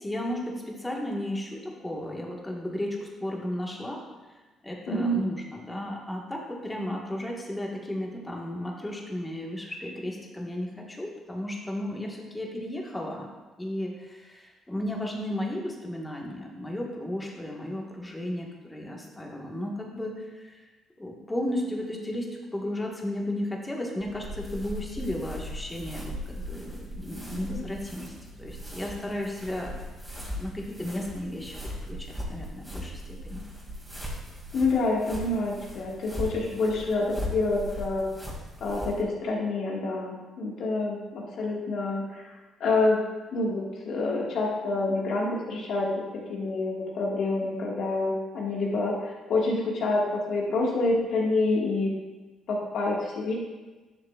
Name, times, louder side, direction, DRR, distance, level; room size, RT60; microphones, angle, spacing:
voice 1, 0.0-4.0 4.6-13.3 13.6-20.6 21.0-22.3 22.5-28.1 28.4-29.8 30.3-31.5 31.8-33.4, left 1 dB, 15° left, -1 dB, 1.6 m, -34 dB
voice 2, 4.9-5.2 34.5-38.0 38.6-42.3 42.6-43.0 43.3-51.9 52.5-53.3, left 2 dB, 70° left, -2 dB, 1.8 m, -27 dB
sound 1, 24.0-39.0, equal, 10° right, 2.4 m, -39 dB
10.5 x 6.6 x 2.5 m, 1.2 s
cardioid pair, 80°, 0 cm